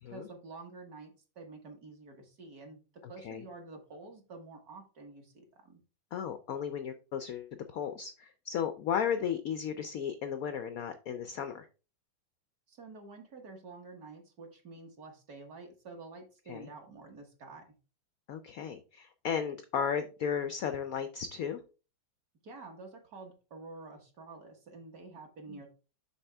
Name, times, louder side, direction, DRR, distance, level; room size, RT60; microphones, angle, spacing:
voice 1, 0.1-5.8 12.7-17.6 22.4-25.7, right 3 dB, 50° right, 3 dB, 1.9 m, -49 dB
voice 2, 6.1-11.7 16.5-16.7 18.3-21.6 25.5-25.6, left 7 dB, 80° left, 9 dB, 0.7 m, -35 dB
7.1 x 5.3 x 3.4 m, 0.33 s
omnidirectional pair, 2.2 m